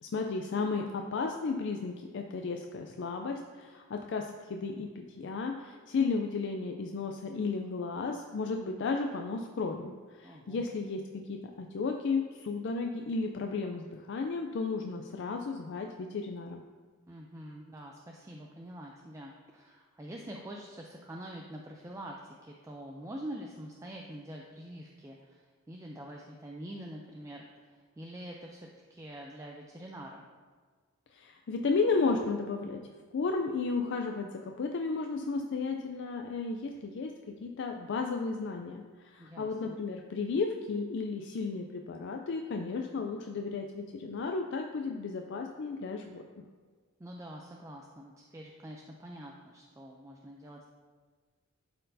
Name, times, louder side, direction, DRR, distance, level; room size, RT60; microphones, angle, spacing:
voice 1, 0.0-11.0 11.3-16.6 31.1-32.8 33.1-37.1 37.4-46.2, left 4 dB, 55° left, 3 dB, 0.4 m, -33 dB
voice 2, 10.2-10.7 17.1-30.3 39.2-39.8 47.0-50.6, right 1 dB, 15° right, -1 dB, 0.4 m, -45 dB
11.5 x 4.3 x 2.7 m, 1.5 s
head